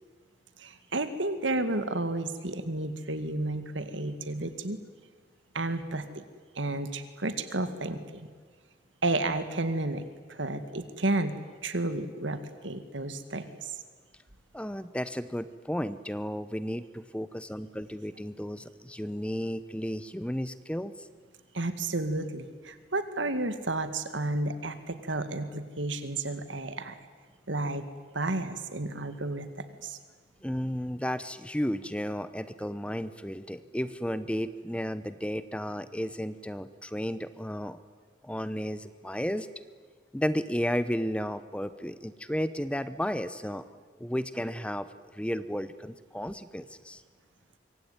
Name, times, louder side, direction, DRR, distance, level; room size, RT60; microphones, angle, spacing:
voice 1, 0.6-4.8 5.5-6.2 6.6-8.3 9.0-11.3 11.6-13.8 21.5-27.0 27.5-27.8 28.1-29.5 29.8-30.0, right 2 dB, 85° right, 10 dB, 2.1 m, -32 dB
voice 2, 14.5-21.1 30.4-37.8 38.2-39.5 40.1-43.7 44.0-44.9 45.1-47.0, equal, 5° left, 13 dB, 0.8 m, -33 dB
25.5 x 24.0 x 9.7 m, 1.5 s
head